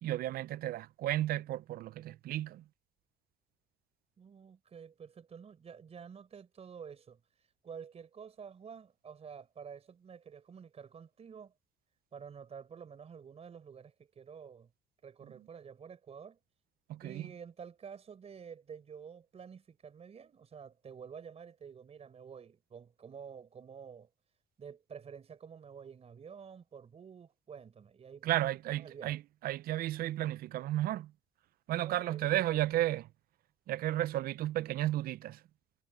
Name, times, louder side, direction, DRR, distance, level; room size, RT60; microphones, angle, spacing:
voice 1, 0.0-2.6 16.9-17.3 28.2-31.1 31.7-33.0 33.7-35.4, right 14 dB, 60° right, 0.5 m, -33 dB
voice 2, 4.2-11.5 12.1-14.7 15.0-16.4 17.0-24.1 24.6-28.5 28.8-29.2 31.7-32.2 32.5-32.8, right 7 dB, 40° right, 4.2 m, -50 dB
cardioid pair, 110°, 17 cm